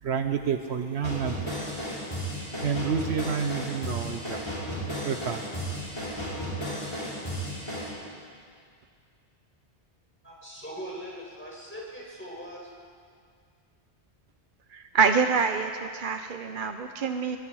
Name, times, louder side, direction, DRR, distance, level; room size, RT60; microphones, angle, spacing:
voice 1, 0.0-1.5 2.6-4.4 5.0-5.5, right 7 dB, 75° right, 6 dB, 1.2 m, -29 dB
sound 1, 1.0-7.9, equal, 30° left, 6.3 m, -34 dB
voice 2, 10.2-12.7, equal, 10° left, -4 dB, 5.4 m, -40 dB
voice 3, 14.7-17.4, right 5 dB, 55° right, 7 dB, 0.9 m, -26 dB
23.0 x 23.0 x 4.9 m, 2.2 s
omnidirectional pair, 1.1 m